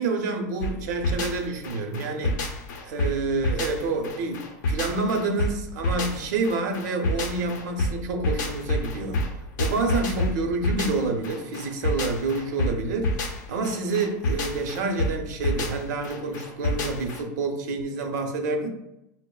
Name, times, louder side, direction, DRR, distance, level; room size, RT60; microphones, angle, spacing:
voice 1, 0.0-2.4 2.8-9.2 9.6-13.2 13.5-18.7, right 3 dB, 70° right, 5 dB, 0.6 m, -28 dB
sound 1, 0.6-17.2, left 1 dB, 75° left, 0.6 m, -28 dB
6.1 x 2.0 x 2.2 m, 0.91 s
supercardioid pair, 160°, 10 cm